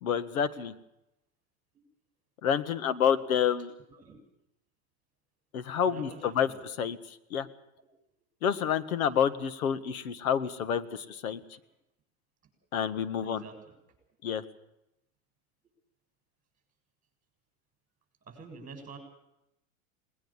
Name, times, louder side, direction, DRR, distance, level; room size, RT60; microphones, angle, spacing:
voice 1, 0.0-0.7 2.4-3.7 5.5-6.1 6.4-6.5 6.8-7.0 7.3-7.5 8.4-11.4 12.7-13.4 14.2-14.4, left 8 dB, 80° left, 14 dB, 1.9 m, -28 dB
voice 2, 3.9-4.2 5.8-6.7 7.8-7.9 13.2-13.7 18.3-19.0, right 4 dB, 20° right, 6 dB, 7.3 m, -46 dB
20.0 x 20.0 x 7.3 m, 0.85 s
supercardioid pair, 130°, 42 cm